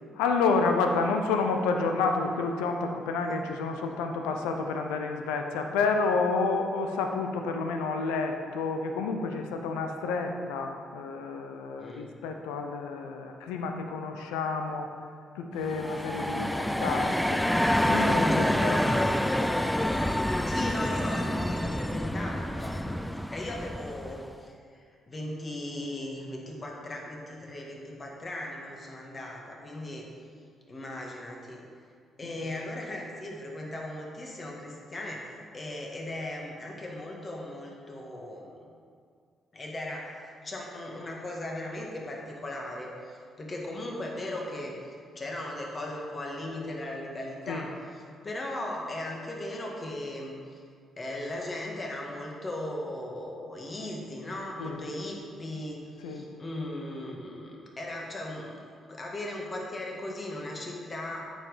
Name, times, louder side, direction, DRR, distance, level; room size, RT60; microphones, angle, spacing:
voice 1, 0.2-14.9 15.3-17.4 17.9-19.1 32.2-32.5 47.5-47.7 54.6-54.8 56.0-56.3, left 4 dB, 90° left, 4 dB, 0.7 m, -29 dB
voice 2, 11.8-12.1 16.4-16.7 18.3-18.6 20.5-30.1 30.7-31.6 32.2-38.7 39.5-47.7 48.2-50.6 51.0-58.6 58.9-61.3, left 1 dB, 35° left, -1 dB, 1.9 m, -38 dB
sound 1, 15.6-24.3, left 1 dB, 5° left, 0.4 m, -27 dB
8.5 x 5.4 x 5.0 m, 2.2 s
supercardioid pair, 55°, 0 cm